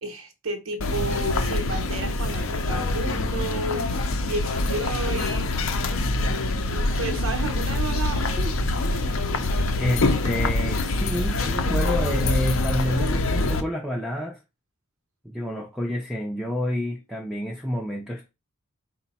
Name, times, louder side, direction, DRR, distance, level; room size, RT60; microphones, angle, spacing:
voice 1, 0.0-3.8 4.2-5.5 6.7-8.5, right 3 dB, 65° right, 0.8 m, -32 dB
sound 1, 0.8-13.6, left 2 dB, 60° left, 0.5 m, -25 dB
voice 2, 9.8-14.4 15.2-18.3, equal, ahead, 0.4 m, -28 dB
4.7 x 2.2 x 4.1 m
head